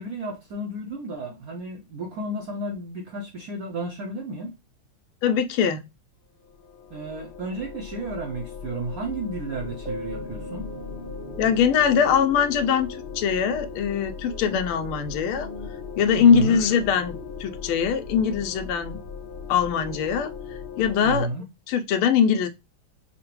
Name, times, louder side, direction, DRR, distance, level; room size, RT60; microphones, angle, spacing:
voice 1, 0.0-4.5 6.9-10.7 16.2-16.6 21.0-21.4, right 2 dB, 75° right, 0.8 m, -32 dB
voice 2, 5.2-5.8 11.4-15.5 16.0-19.0 19.5-21.3 21.7-22.5, left 7 dB, 85° left, 1.5 m, -22 dB
sound 1, 6.4-21.3, left 6 dB, 70° left, 1.5 m, -39 dB
sound 2, 9.5-18.5, equal, 25° left, 1.0 m, -44 dB
sound 3, 9.9-13.1, right 1 dB, 5° left, 0.6 m, -43 dB
5.7 x 2.2 x 2.9 m
omnidirectional pair, 2.3 m